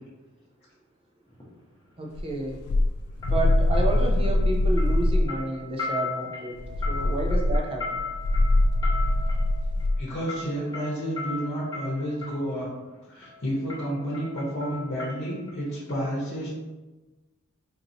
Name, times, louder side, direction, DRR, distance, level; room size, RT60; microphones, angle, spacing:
sound 1, 1.3-1.5 3.2-4.5 4.8-12.5 13.2-13.4 13.7-15.6 15.9-16.0, left 4 dB, 20° left, 0.8 m, -37 dB
voice 1, 2.0-2.6 3.2-6.5 6.9-8.0, right 2 dB, 25° right, 0 dB, 0.6 m, -30 dB
sound 2, 2.1-5.4 6.6-10.0, left 1 dB, 90° left, 0.3 m, -23 dB
voice 2, 10.0-12.7 13.1-16.5, equal, 50° left, -6 dB, 0.9 m, -30 dB
4.0 x 2.9 x 2.7 m, 1.2 s
head